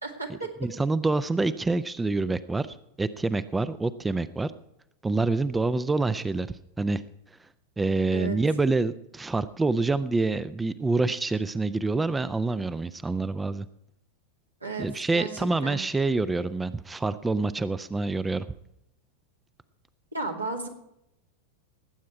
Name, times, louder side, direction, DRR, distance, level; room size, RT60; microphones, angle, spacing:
voice 1, 0.0-0.5 8.1-8.4 14.6-15.3 15.6-15.8 20.1-20.7, right 3 dB, 85° right, 1 dB, 2.2 m, -33 dB
voice 2, 0.6-2.7 3.0-4.5 5.0-7.0 7.8-13.7 14.8-18.5, right 3 dB, 10° right, 15 dB, 0.5 m, -26 dB
19.0 x 8.5 x 4.7 m, 0.80 s
figure-of-eight pair, 90°, 0 cm